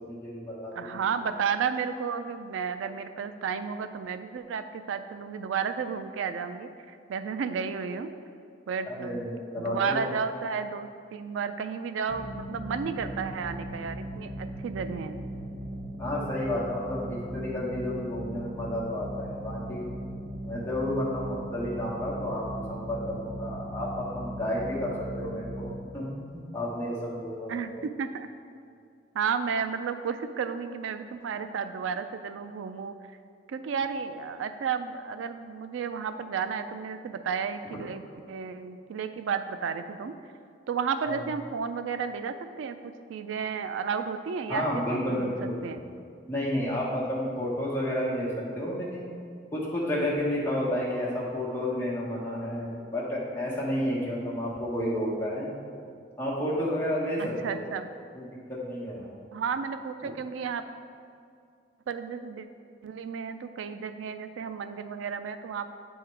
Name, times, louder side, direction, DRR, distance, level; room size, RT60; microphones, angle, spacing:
voice 1, 0.1-1.0 9.0-10.1 16.0-19.9 20.5-26.0 26.3-27.6 41.0-41.2 44.5-45.5 46.3-48.3 48.5-49.1 49.5-55.8 56.2-57.2 57.5-57.7 58.1-59.1, left 1 dB, 10° left, -6 dB, 1.2 m, -31 dB
voice 2, 0.7-8.1 8.7-9.3 9.6-15.2 27.5-28.3 29.1-32.9 33.5-38.0 38.3-40.1 40.7-42.8 43.1-45.8 57.2-57.9 59.3-60.6 61.9-62.5 62.8-65.7, right 6 dB, 85° right, 10 dB, 0.3 m, -32 dB
sound 1, 12.1-25.7, right 1 dB, 55° right, 1.4 m, -38 dB
8.3 x 3.6 x 4.5 m, 2.3 s
head